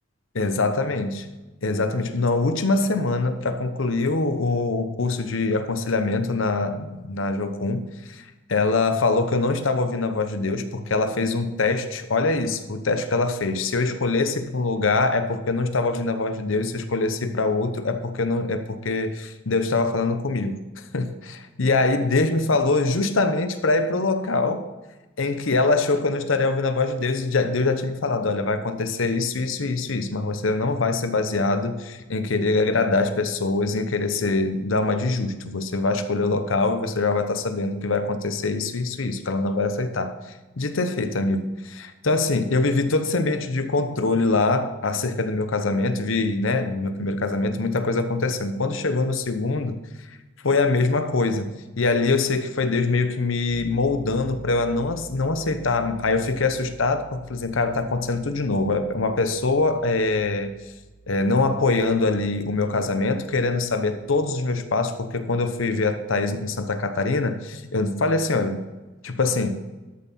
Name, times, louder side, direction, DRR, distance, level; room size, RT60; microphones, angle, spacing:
voice 1, 0.3-1.3 1.6-24.7 25.2-49.8 50.1-50.2 50.4-51.5 51.8-60.5 61.1-68.6 69.0-69.6, left 3 dB, 80° left, 9 dB, 0.9 m, -24 dB
Piano, 53.5-64.3, right 3 dB, 80° right, 1.6 m, -47 dB
12.5 x 7.3 x 4.2 m, 1.1 s
head